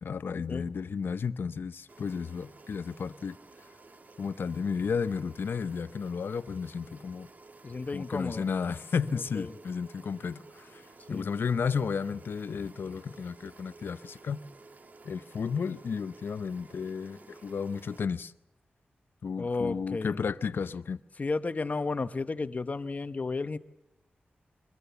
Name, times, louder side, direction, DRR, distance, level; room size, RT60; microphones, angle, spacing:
voice 1, 0.0-3.4 4.2-7.3 7.9-14.4 15.0-18.3 19.2-21.0, left 6 dB, 75° left, 0.7 m, -33 dB
sound 1, 1.9-18.1, right 3 dB, 50° right, 1.3 m, -53 dB
voice 2, 7.6-8.5 9.3-9.5 11.1-11.3 19.4-20.2 21.2-23.6, left 3 dB, 45° left, 1.0 m, -33 dB
24.0 x 21.0 x 6.9 m
wide cardioid pair, 80°, 4 cm